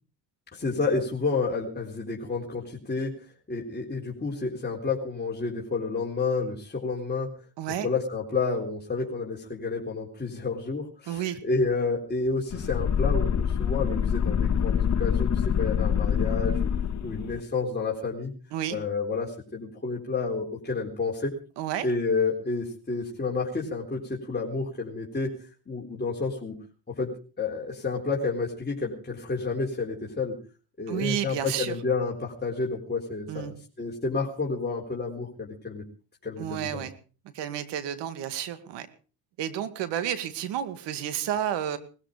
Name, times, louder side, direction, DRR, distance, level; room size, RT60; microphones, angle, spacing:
voice 1, 0.5-3.1 3.5-7.3 7.8-16.7 17.0-18.3 18.7-21.3 21.8-25.3 25.7-26.6 26.9-27.1 27.4-30.4 30.8-35.8 36.2-36.9, left 4 dB, 25° left, -3 dB, 4.0 m, -30 dB
voice 2, 11.1-11.4 18.5-18.8 21.6-21.9 30.9-31.7 33.3-33.5 36.4-36.9 37.3-38.9 39.4-41.8, right 10 dB, 85° right, 11 dB, 2.2 m, -31 dB
sound 1, 12.5-17.4, left 8 dB, 40° left, 1.6 m, -25 dB
20.0 x 14.0 x 5.0 m, 0.38 s
cardioid pair, 90°, 41 cm